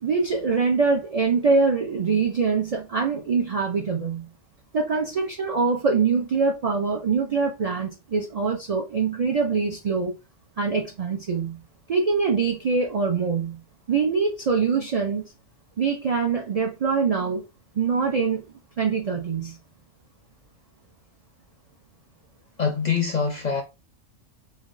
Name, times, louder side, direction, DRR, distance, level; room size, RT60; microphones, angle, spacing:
voice 1, 0.0-4.3 4.7-10.1 10.6-11.6 11.9-13.6 13.9-15.3 15.8-17.5 17.8-18.4 18.8-19.6, right 5 dB, 80° right, 0.3 m, -24 dB
voice 2, 22.6-23.6, left 6 dB, 55° left, 0.5 m, -24 dB
3.2 x 2.3 x 2.5 m
omnidirectional pair, 1.3 m